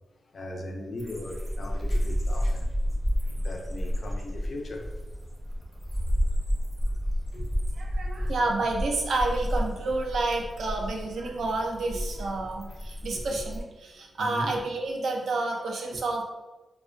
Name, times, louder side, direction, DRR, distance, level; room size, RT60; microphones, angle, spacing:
voice 1, 0.3-2.7 3.3-4.9 7.3-7.5 8.2-8.3 13.1-13.4 14.2-14.6 15.9-16.0, left 1 dB, 50° left, 1 dB, 0.4 m, -38 dB
sound 1, 1.0-13.6, equal, ahead, 0.5 m, -31 dB
voice 2, 7.7-16.2, right 2 dB, 75° right, 1 dB, 0.4 m, -29 dB
2.4 x 2.1 x 2.5 m, 1.1 s
cardioid pair, 95°, 0 cm